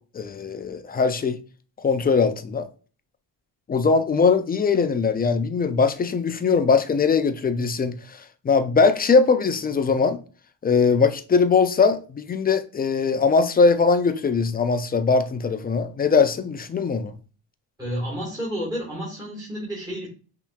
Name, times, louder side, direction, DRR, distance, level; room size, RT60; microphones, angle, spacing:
voice 1, 0.1-1.4 1.8-2.7 3.7-8.2 8.4-10.2 10.6-17.1, left 5 dB, 25° left, 0.3 m, -21 dB
voice 2, 17.8-20.1, equal, 10° right, 1.5 m, -30 dB
5.5 x 2.9 x 2.3 m
cardioid pair, 90°, 46 cm